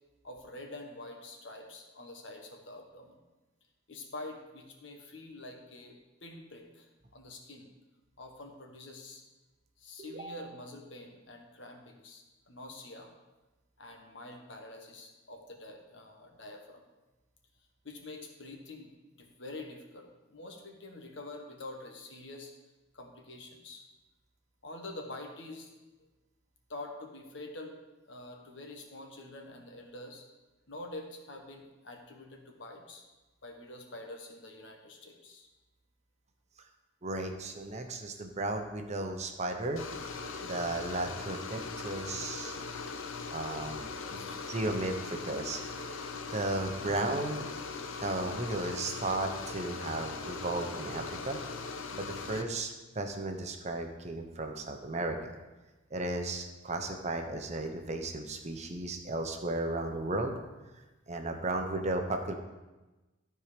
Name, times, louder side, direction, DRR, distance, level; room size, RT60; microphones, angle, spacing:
voice 1, 0.2-3.2 3.9-5.9 6.2-7.7 8.2-9.2 9.8-13.1 13.8-16.8 17.8-18.9 19.2-22.5 22.9-23.8 24.6-25.7 26.7-27.7 28.1-30.2 30.7-33.0 33.4-35.5 43.9-44.5 52.1-52.4, left 2 dB, 65° left, 2 dB, 1.4 m, -46 dB
voice 2, 10.0-10.4 37.0-39.8 40.4-42.5 43.3-44.2 44.5-45.6 46.0-46.1 46.3-47.5 48.0-51.4 51.6-55.4 55.9-60.4 61.1-62.3, right 2 dB, 35° right, 5 dB, 0.8 m, -35 dB
sound 1, 39.8-52.4, left 4 dB, 80° left, 0.7 m, -40 dB
13.0 x 4.7 x 5.1 m, 1.1 s
head